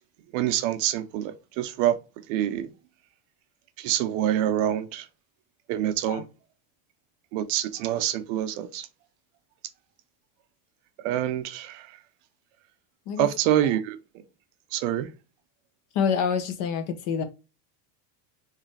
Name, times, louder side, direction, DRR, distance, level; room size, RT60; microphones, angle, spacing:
voice 1, 0.3-2.0 2.3-2.7 3.8-5.1 5.7-6.2 7.3-8.9 11.0-12.0 13.2-14.2 14.7-15.1, right 11 dB, 50° right, 0.6 m, -26 dB
voice 2, 15.9-17.2, left 6 dB, 40° left, 0.7 m, -26 dB
4.9 x 3.3 x 3.2 m
supercardioid pair, 170°, 48 cm